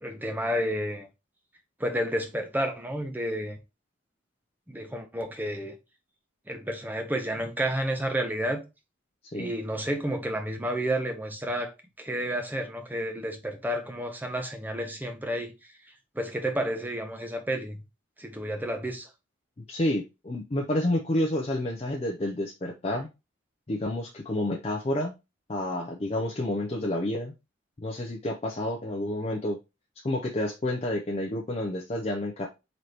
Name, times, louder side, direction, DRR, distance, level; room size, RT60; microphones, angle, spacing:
voice 1, 0.0-1.1 1.8-3.6 4.7-5.8 6.5-8.6 9.3-11.7 12.0-15.5 16.1-17.8 18.2-19.1, equal, 10° right, 0.6 m, -31 dB
voice 2, 19.6-23.1 23.7-25.1 25.5-27.3 27.8-29.6 30.0-32.5, left 1 dB, 30° left, 0.5 m, -29 dB
3.9 x 2.9 x 3.2 m
head